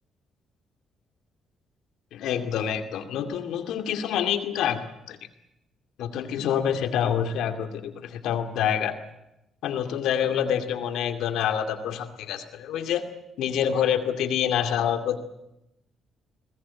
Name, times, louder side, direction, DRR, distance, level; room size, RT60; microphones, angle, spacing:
voice 1, 2.1-5.2 6.0-8.9 9.6-13.1 13.4-15.2, left 9 dB, 85° left, 8 dB, 2.2 m, -27 dB
22.5 x 20.0 x 8.6 m, 0.88 s
cardioid pair, 90°, 0 cm